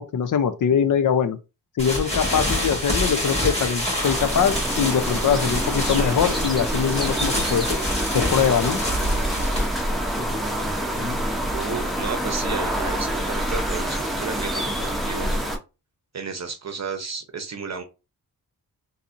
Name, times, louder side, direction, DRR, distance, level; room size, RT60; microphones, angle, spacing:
voice 1, 0.0-1.4 1.8-7.7 8.1-8.8, left 7 dB, 60° left, 0.6 m, -22 dB
sound 1, 1.8-11.4, left 1 dB, 15° left, 1.7 m, -27 dB
sound 2, 4.0-15.6, right 1 dB, ahead, 0.8 m, -26 dB
voice 2, 11.5-15.3 16.1-17.8, right 5 dB, 45° right, 0.7 m, -32 dB
4.1 x 2.7 x 2.6 m
wide cardioid pair, 105°, 36 cm